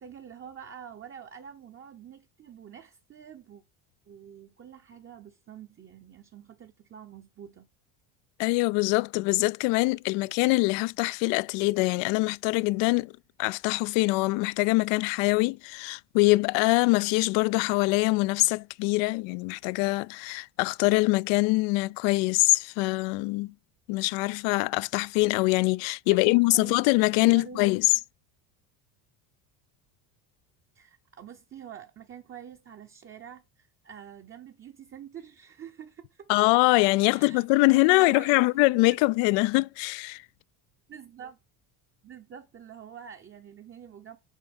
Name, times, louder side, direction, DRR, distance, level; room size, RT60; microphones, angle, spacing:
voice 1, 0.0-3.6 4.1-7.7 19.1-19.2 26.1-26.8 27.1-27.8 30.7-36.3 37.1-38.7 40.9-41.4 42.0-44.2, right 8 dB, 25° right, 0.8 m, -46 dB
voice 2, 8.4-13.1 13.4-23.5 23.9-28.0 36.3-40.2, left 24 dB, 70° left, 0.5 m, -24 dB
7.4 x 4.5 x 5.3 m
supercardioid pair, 110°, 47 cm